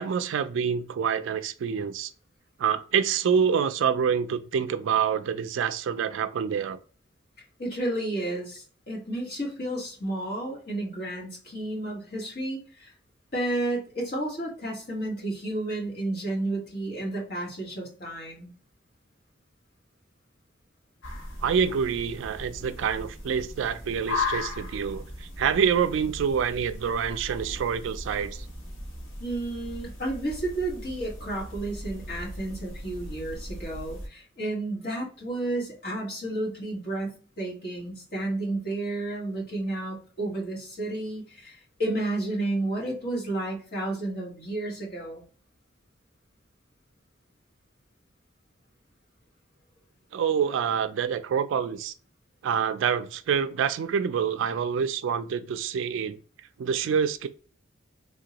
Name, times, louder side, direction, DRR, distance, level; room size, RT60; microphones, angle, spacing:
voice 1, 0.0-2.1 2.6-6.8 21.4-28.5 50.1-51.9 52.4-56.2 56.6-57.3, right 7 dB, 70° right, 0.3 m, -26 dB
voice 2, 7.6-12.9 13.3-18.5 29.2-45.2, right 2 dB, 50° left, 1.4 m, -32 dB
sound 1, 21.0-34.1, left 2 dB, 70° left, 1.1 m, -37 dB
3.6 x 2.2 x 2.8 m
head